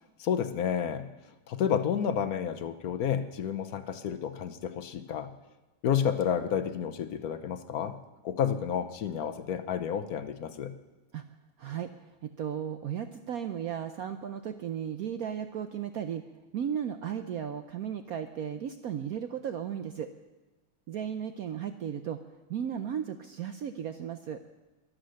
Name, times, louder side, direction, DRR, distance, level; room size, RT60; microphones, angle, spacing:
voice 1, 0.2-1.1 1.5-5.3 5.8-8.0 8.2-10.7, left 8 dB, 60° left, 10 dB, 1.0 m, -30 dB
voice 2, 11.6-16.2 16.5-20.1 20.9-22.2 22.5-24.4, right 9 dB, 75° right, 9 dB, 0.8 m, -35 dB
22.5 x 7.6 x 6.4 m, 1.1 s
omnidirectional pair, 2.2 m